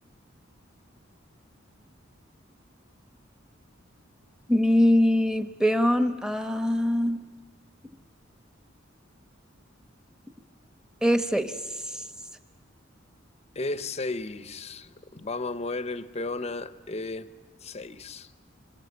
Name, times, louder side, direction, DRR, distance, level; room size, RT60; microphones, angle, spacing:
voice 1, 4.5-7.2 11.0-11.5 11.9-12.0, left 1 dB, 5° right, 1.0 m, -23 dB
voice 2, 13.5-17.3 17.6-18.3, left 3 dB, 35° left, 0.8 m, -34 dB
27.5 x 26.0 x 8.2 m
head